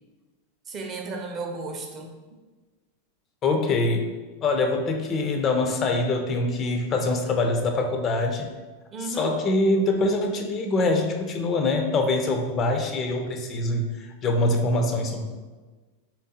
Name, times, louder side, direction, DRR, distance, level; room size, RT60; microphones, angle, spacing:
voice 1, 0.7-2.2 8.9-9.3, right 3 dB, 30° right, 2 dB, 0.6 m, -34 dB
voice 2, 3.4-4.1 4.4-8.5 9.0-15.2, left 2 dB, 30° left, 4 dB, 0.4 m, -24 dB
4.2 x 3.4 x 2.7 m, 1.3 s
figure-of-eight pair, 90°, 0 cm